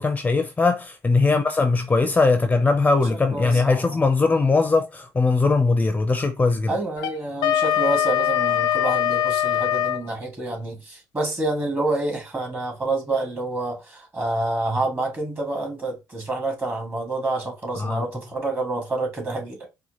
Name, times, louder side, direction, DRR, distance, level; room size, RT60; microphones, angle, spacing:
voice 1, 0.0-6.7 17.7-18.0, left 3 dB, 20° left, 0.5 m, -20 dB
voice 2, 3.3-4.0 6.7-19.7, right 2 dB, 30° right, 1.9 m, -28 dB
Wind instrument woodwind instrument, 7.0-10.0, left 10 dB, 85° left, 0.5 m, -22 dB
4.2 x 2.2 x 2.9 m
supercardioid pair, 70°, 7 cm